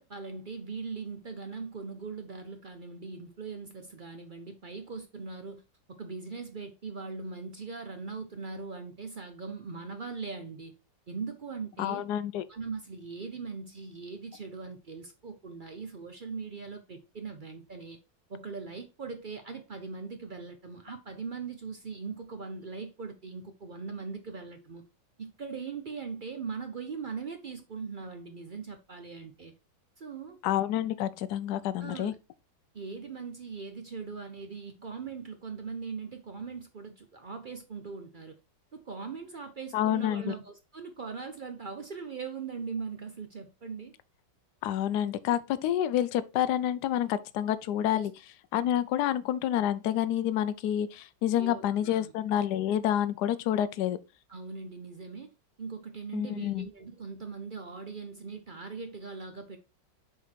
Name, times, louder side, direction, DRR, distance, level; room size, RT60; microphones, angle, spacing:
voice 1, 0.0-5.6 5.9-10.7 11.1-12.0 12.5-18.0 18.3-24.8 25.2-29.5 30.0-30.4 31.8-32.2 32.7-38.4 38.7-43.9 47.9-48.1 51.4-52.1 54.3-55.3 55.6-59.6, right 5 dB, 60° right, 0.5 m, -40 dB
voice 2, 11.8-12.4 30.4-32.1 39.7-40.3 44.6-48.1 48.5-54.0 56.1-56.7, left 11 dB, 70° left, 1.1 m, -28 dB
6.7 x 3.8 x 4.5 m
omnidirectional pair, 1.9 m